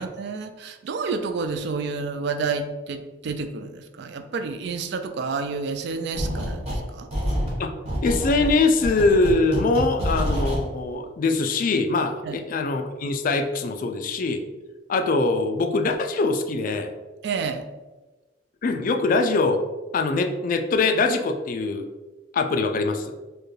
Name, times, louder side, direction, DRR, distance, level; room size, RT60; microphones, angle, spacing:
voice 1, 0.0-7.1 12.2-12.4 17.2-17.7, right 4 dB, 65° right, 8 dB, 0.3 m, -30 dB
sound 1, 6.1-6.8 7.1-10.6, equal, 35° right, 1.2 m, -27 dB
voice 2, 8.0-14.4 14.9-16.9 18.6-19.6 19.9-21.9 22.3-23.1, left 3 dB, 45° left, 6 dB, 0.3 m, -23 dB
4.5 x 2.2 x 3.2 m, 1.2 s
head